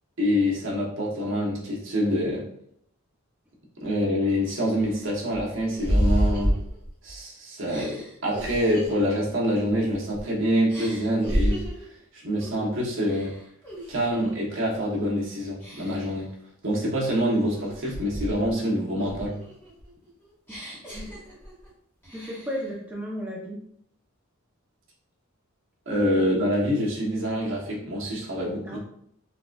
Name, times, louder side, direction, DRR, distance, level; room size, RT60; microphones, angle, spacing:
voice 1, 0.2-2.5 3.8-6.5 7.0-11.7 12.1-13.3 13.9-16.3 16.6-19.4 25.9-28.8, equal, 65° right, -3 dB, 1.0 m, -26 dB
sound 1, 3.8-3.9 4.4-7.2 7.7-10.3 10.7-11.9 12.4-12.7 13.0-14.3 14.7-15.1 15.6-16.2 16.7-18.6 19.0-21.7 22.0-22.7, equal, 10° left, 1.2 m, -31 dB
voice 2, 22.1-23.6 28.7-28.8, equal, 10° right, -4 dB, 0.7 m, -34 dB
3.8 x 2.4 x 2.3 m, 0.70 s
head